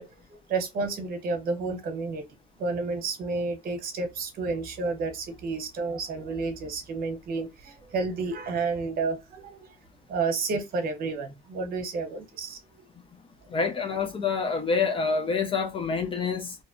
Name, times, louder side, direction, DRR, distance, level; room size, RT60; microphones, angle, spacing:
voice 1, 0.0-2.2 2.6-9.8 10.1-12.9, right 4 dB, 60° right, 0.9 m, -31 dB
voice 2, 13.5-16.6, left 4 dB, 30° left, 0.4 m, -27 dB
2.6 x 2.0 x 2.5 m
cardioid pair, 110°, 17 cm